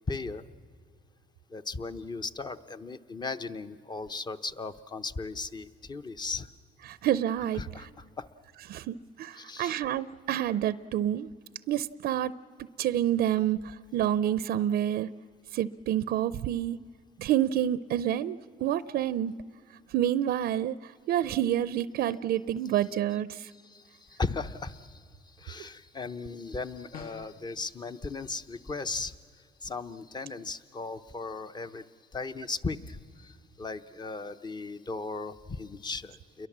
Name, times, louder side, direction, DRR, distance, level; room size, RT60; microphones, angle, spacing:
voice 1, 0.1-0.4 1.5-6.5 7.5-8.3 9.3-9.8 23.5-29.2 29.6-31.9 32.1-36.5, left 3 dB, 25° left, 11 dB, 0.9 m, -37 dB
voice 2, 6.9-7.6 8.7-11.3 11.7-12.3 12.8-15.1 15.5-16.8 17.2-19.3 19.9-23.5, right 11 dB, 65° right, 16 dB, 0.6 m, -28 dB
sound 1, 26.9-27.5, left 6 dB, 60° left, 1.3 m, -45 dB
29.0 x 22.5 x 7.4 m, 2.1 s
cardioid pair, 110°, 17 cm